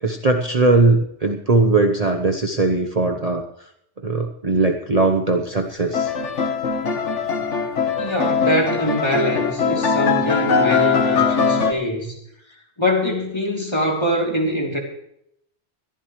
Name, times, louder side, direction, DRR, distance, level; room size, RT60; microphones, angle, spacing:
voice 1, 0.0-3.4 4.0-6.1, right 3 dB, 35° right, 4 dB, 1.1 m, -19 dB
sound 1, 5.9-11.7, left 5 dB, 85° left, 1.6 m, -21 dB
voice 2, 8.0-12.1 12.8-14.8, equal, 25° left, -1 dB, 3.1 m, -23 dB
22.0 x 14.5 x 3.2 m, 0.73 s
omnidirectional pair, 1.2 m